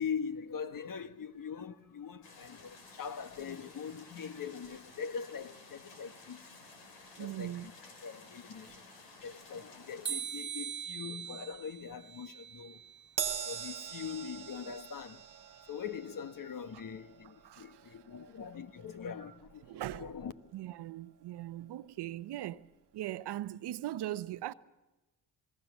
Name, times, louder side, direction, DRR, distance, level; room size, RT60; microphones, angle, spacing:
voice 1, 0.0-6.4 7.2-7.7 8.0-8.7 9.2-12.8 13.5-15.2 15.7-19.6 20.0-20.3, left 7 dB, 50° left, 1.4 m, -42 dB
sound 1, 2.2-10.1, left 3 dB, 85° left, 3.9 m, -54 dB
voice 2, 7.2-7.7 8.7-8.8 16.7-16.8 17.4-18.0 19.6-20.2 20.5-24.5, right 14 dB, 70° right, 0.8 m, -40 dB
sound 2, 10.1-13.1, right 8 dB, 25° right, 1.2 m, -41 dB
Crash cymbal, 13.2-19.8 20.1-20.4 21.4-21.5, right 8 dB, 50° right, 1.3 m, -43 dB
28.0 x 19.5 x 7.3 m
supercardioid pair, 55°, 41 cm